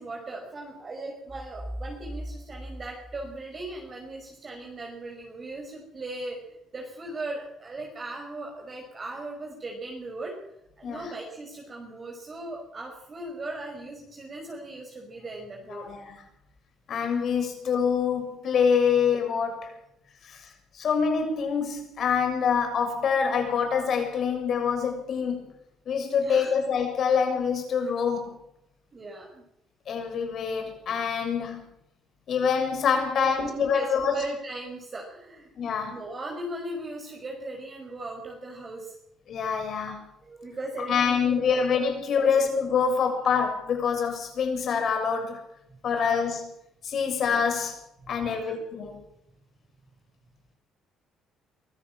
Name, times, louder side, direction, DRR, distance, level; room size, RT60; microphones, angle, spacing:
voice 1, 0.0-10.4 10.8-15.9 18.9-19.0 26.2-26.6 28.9-29.4 33.2-35.5 35.9-39.0 40.2-41.6 42.2-42.3 45.8-46.2 47.5-47.7 48.0-48.5, right 2 dB, 30° right, 0 dB, 5.4 m, -38 dB
sound 1, 1.3-4.2, equal, 10° right, 3.3 m, -40 dB
voice 2, 15.7-16.2 16.9-19.7 20.2-25.5 25.9-28.4 29.9-31.6 32.3-34.2 35.6-36.0 39.3-40.0 40.9-45.4 45.8-46.5 46.8-47.8 48.1-49.0, left 6 dB, 55° left, 5 dB, 7.0 m, -26 dB
23.5 x 14.5 x 7.6 m, 0.78 s
cardioid pair, 110°, 0 cm